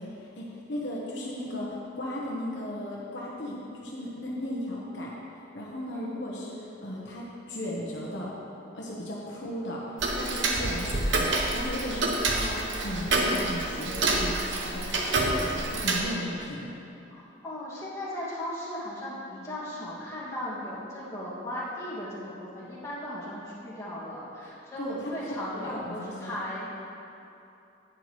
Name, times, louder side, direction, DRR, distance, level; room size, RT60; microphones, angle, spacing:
voice 1, 0.0-5.1 5.5-8.3 8.7-9.8 10.1-16.7 24.8-26.4, equal, 60° left, -4 dB, 1.1 m, -36 dB
Tick-tock, 10.0-16.0, right 2 dB, 70° right, 1.0 m, -27 dB
voice 2, 17.1-26.7, left 1 dB, 15° left, -9 dB, 2.1 m, -37 dB
11.0 x 9.0 x 3.2 m, 2.8 s
head